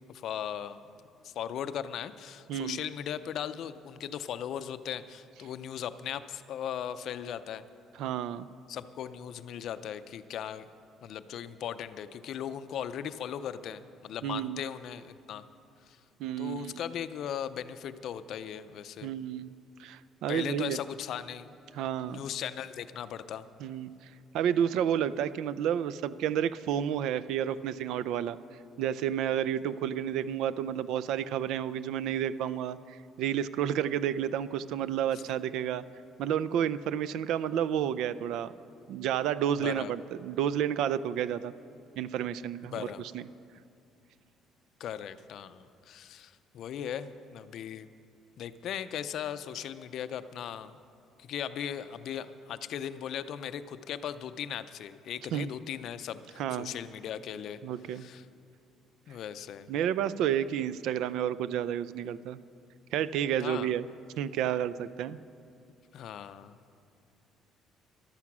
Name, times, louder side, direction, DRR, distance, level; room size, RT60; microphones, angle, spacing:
voice 1, 0.1-0.8 1.2-7.6 8.7-10.7 11.0-15.4 15.9-16.0 16.4-19.1 20.3-21.5 22.0-23.5 35.1-35.2 39.6-39.9 42.7-43.0 44.8-47.9 48.4-50.8 51.2-57.6 57.9-58.2 59.1-59.7 63.4-63.7 65.9-66.6, left 9 dB, 50° left, 12 dB, 0.5 m, -38 dB
voice 2, 2.5-2.8 8.0-8.5 14.2-14.6 16.2-16.8 19.0-19.5 19.8-20.8 21.7-22.2 23.6-23.9 24.3-28.4 28.8-35.8 36.2-38.5 38.9-41.5 42.0-43.3 55.3-55.5 56.4-56.7 57.6-58.1 59.7-62.4 62.9-63.9 64.2-65.2, right 10 dB, 65° right, 16 dB, 0.4 m, -31 dB
14.5 x 12.0 x 6.0 m, 2.4 s
cardioid pair, 175°, 0 cm